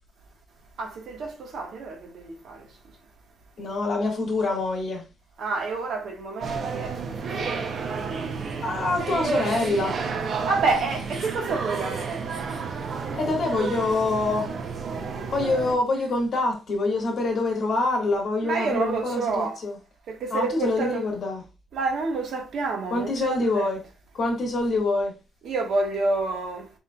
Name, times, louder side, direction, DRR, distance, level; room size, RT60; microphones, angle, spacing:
voice 1, 0.8-2.7 5.4-8.0 10.4-12.3 18.4-19.6 20.1-21.0 21.7-23.7 25.4-26.7, right 3 dB, 65° right, 1.2 m, -29 dB
voice 2, 3.6-5.0 8.5-10.0 12.5-12.6 13.1-14.5 15.3-19.7 20.3-21.4 22.9-23.8 24.1-25.1, left 2 dB, 50° left, 1.8 m, -25 dB
sound 1, 6.4-15.8, right 5 dB, 50° right, 0.6 m, -31 dB
5.3 x 3.7 x 2.3 m
wide cardioid pair, 165°, 0 cm